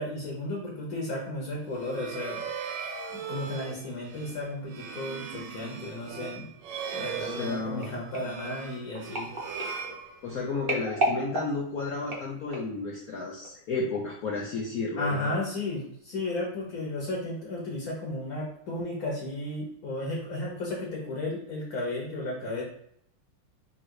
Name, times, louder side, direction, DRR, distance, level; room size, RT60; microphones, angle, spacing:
voice 1, 0.0-2.5 3.1-6.5 6.9-9.3 15.0-22.6, left 2 dB, 50° left, -2 dB, 1.3 m, -34 dB
sound 1, 1.6-10.6, right 6 dB, 70° right, 1.2 m, -39 dB
voice 2, 7.2-7.9 10.2-15.4, left 3 dB, 70° left, -3 dB, 0.8 m, -32 dB
sound 2, 7.8-12.8 13.4-13.7 13.9-14.0, right 2 dB, 40° right, 0.7 m, -34 dB
3.8 x 3.0 x 4.6 m, 0.70 s
omnidirectional pair, 2.3 m